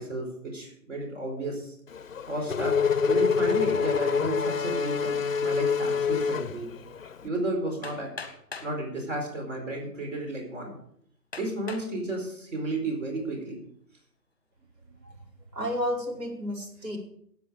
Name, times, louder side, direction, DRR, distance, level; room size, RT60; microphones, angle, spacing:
voice 1, 0.0-1.7 2.3-2.8 3.1-6.7 7.2-8.1 8.6-10.7 11.4-13.6, right 2 dB, 50° right, 1 dB, 4.5 m, -32 dB
Race car auto racing / Accelerating revving vroom, 1.9-7.2, left 6 dB, 55° left, 0.5 m, -26 dB
Hammer, 7.8-8.8 9.7-9.8 10.4-10.5 11.3-11.9 12.5-12.9, left 4 dB, 10° left, 1.1 m, -41 dB
voice 2, 15.5-17.0, equal, 80° right, -1 dB, 4.9 m, -31 dB
16.0 x 8.5 x 5.1 m, 0.68 s
hypercardioid pair, 180°, 48 cm